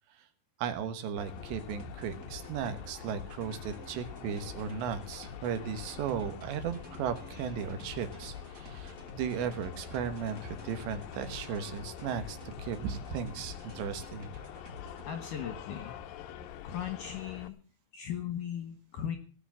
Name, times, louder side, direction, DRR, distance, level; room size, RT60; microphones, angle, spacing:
voice 1, 0.6-14.3, right 7 dB, 75° right, 9 dB, 3.3 m, -36 dB
sound 1, 1.2-17.5, left 9 dB, 85° left, 2.0 m, -46 dB
sound 2, 1.4-15.1, left 2 dB, 30° right, 1.9 m, -48 dB
voice 2, 15.0-16.0 16.6-17.6 17.9-19.2, left 9 dB, 70° left, 8 dB, 2.2 m, -37 dB
18.0 x 6.2 x 8.5 m, 0.41 s
omnidirectional pair, 5.3 m